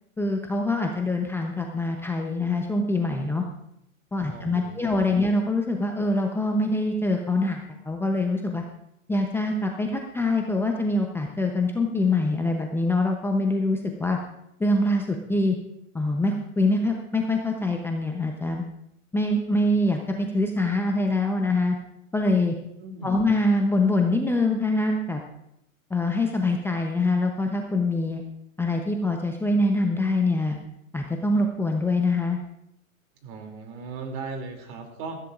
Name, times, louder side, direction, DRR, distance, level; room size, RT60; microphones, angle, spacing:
voice 1, 0.2-3.4 4.1-8.6 9.1-14.2 14.6-15.6 15.9-18.6 19.1-21.8 22.1-22.6 23.0-25.2 25.9-28.2 28.6-30.6 30.9-32.4, left 2 dB, 5° left, 2 dB, 0.7 m, -24 dB
voice 2, 4.3-5.4 22.8-23.4 33.2-35.2, right 4 dB, 45° right, 3 dB, 2.9 m, -38 dB
17.0 x 14.0 x 2.5 m, 0.79 s
hypercardioid pair, 110°, 42 cm